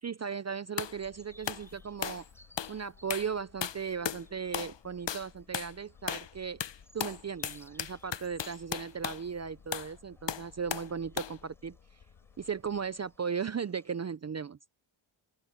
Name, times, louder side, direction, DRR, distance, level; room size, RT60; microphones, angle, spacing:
voice 1, 0.0-2.3 2.7-6.6 6.9-11.8 12.4-14.6, right 6 dB, 35° right, 0.4 m, -37 dB
sound 1, 0.8-13.2, left 7 dB, 90° left, 2.7 m, -59 dB
sound 2, 0.8-1.0 1.5-1.7 2.0-2.3 2.6-2.8 3.1-3.3 3.6-4.2 4.5-4.8 5.1-5.3 5.5-5.7 6.1-6.3 6.6-9.2 9.7-9.9 10.3-10.9 11.2-11.4, left 9 dB, 60° left, 0.9 m, -36 dB
sound 3, 0.8-14.0, equal, 5° left, 5.2 m, -63 dB
open air
wide cardioid pair, 115°, 49 cm